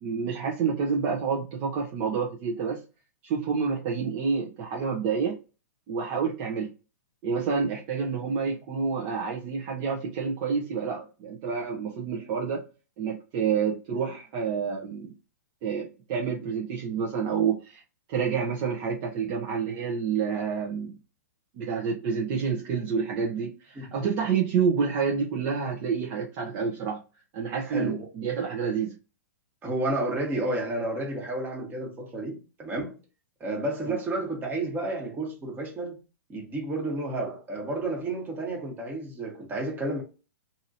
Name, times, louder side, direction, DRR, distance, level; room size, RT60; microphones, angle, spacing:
voice 1, 0.0-2.8 3.2-5.4 5.9-6.7 7.2-12.7 13.0-15.1 15.6-17.8 18.1-20.9 21.5-27.0 27.3-29.0 33.9-34.0, right 6 dB, 40° right, 0.9 m, -28 dB
voice 2, 27.7-28.1 29.6-33.0 33.4-36.0 36.3-40.0, right 2 dB, 20° right, 1.3 m, -31 dB
2.8 x 2.7 x 2.6 m
hypercardioid pair, 125°, 9 cm